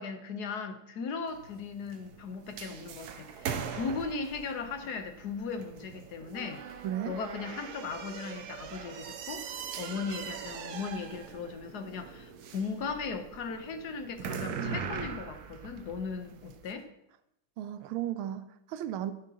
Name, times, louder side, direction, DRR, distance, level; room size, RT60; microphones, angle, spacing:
voice 1, 0.0-6.6 7.0-16.9, left 5 dB, 60° left, 8 dB, 1.2 m, -37 dB
sound 1, 1.3-16.7, right 6 dB, 65° right, 1.1 m, -41 dB
voice 2, 6.8-7.2 17.6-19.1, right 11 dB, 85° right, 11 dB, 1.5 m, -35 dB
12.0 x 9.4 x 2.8 m, 0.82 s
omnidirectional pair, 2.3 m